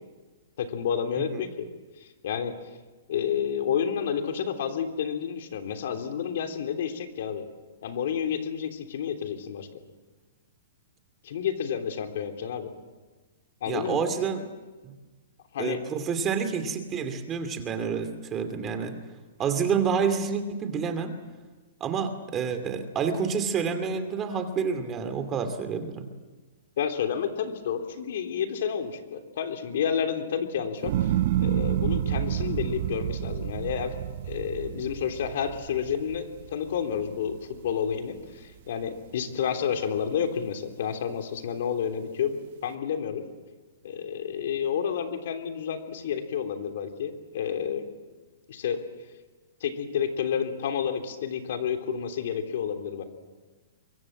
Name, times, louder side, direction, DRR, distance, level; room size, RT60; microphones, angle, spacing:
voice 1, 0.6-1.7 2.2-2.5 3.1-7.5 7.8-9.7 11.2-12.7 13.6-14.0 15.5-15.8 26.8-31.1 31.4-34.0 34.3-43.2 43.8-47.8 48.5-48.8 49.6-53.0, left 8 dB, 65° left, 6 dB, 3.3 m, -30 dB
voice 2, 13.7-14.5 14.8-14.9 15.6-19.0 19.4-21.1 21.8-26.1, right 6 dB, 20° right, 8 dB, 2.5 m, -28 dB
sound 1, 30.8-37.2 37.6-38.2, right 11 dB, 55° right, 0.9 m, -29 dB
24.5 x 24.0 x 7.5 m, 1.3 s
hypercardioid pair, 150°, 0 cm